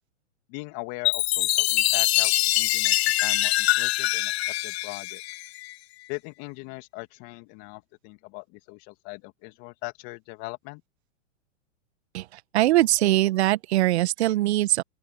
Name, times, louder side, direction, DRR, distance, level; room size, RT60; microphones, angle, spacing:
voice 1, 0.5-4.3 4.6-5.2 6.1-10.8, left 27 dB, 40° left, 2.2 m, -40 dB
Chime, 1.0-5.7, left 16 dB, 60° left, 0.7 m, -24 dB
voice 2, 12.1-14.8, right 16 dB, 60° right, 1.6 m, -22 dB
open air
hypercardioid pair, 120°, 37 cm